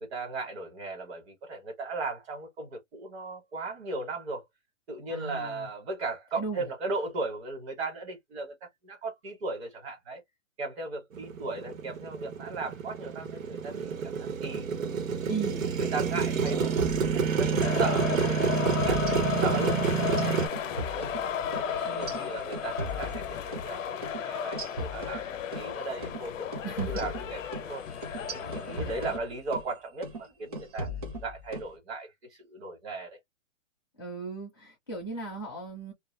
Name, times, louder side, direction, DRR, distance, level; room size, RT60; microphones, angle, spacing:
voice 1, 0.0-4.4 4.9-10.2 10.6-15.3 15.7-16.8 17.4-21.1 21.5-24.6 24.9-26.5 26.9-27.8 28.3-30.9 31.2-33.2, right 3 dB, 50° right, 1.2 m, -37 dB
voice 2, 5.1-5.7 6.4-6.7 15.3-15.7 21.8-22.3 26.6-27.1 28.4-29.1 34.0-35.9, right 4 dB, 20° left, 0.4 m, -37 dB
Motorcycle, 11.1-20.5, right 6 dB, 85° right, 1.1 m, -28 dB
sound 1, 15.9-17.7 18.0-18.2 18.5-19.7 20.0-23.7 24.0-24.2 24.5-25.7 26.0-26.2 26.5-29.7 30.0-30.3 30.5-31.7, equal, 30° right, 0.6 m, -38 dB
sound 2, 17.6-29.2, left 8 dB, 75° left, 0.6 m, -34 dB
2.3 x 2.2 x 3.1 m
hypercardioid pair, 170°, 39 cm